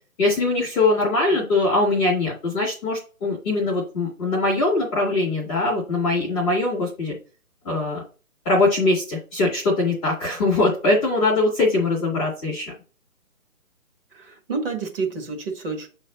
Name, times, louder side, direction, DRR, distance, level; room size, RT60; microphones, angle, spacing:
voice 1, 0.2-7.1 7.6-8.0 8.4-12.7, left 2 dB, 5° left, -6 dB, 0.8 m, -22 dB
voice 2, 14.1-15.9, right 4 dB, 40° right, 2 dB, 1.5 m, -29 dB
7.7 x 3.2 x 4.0 m, 0.36 s
hypercardioid pair, 160°, 44 cm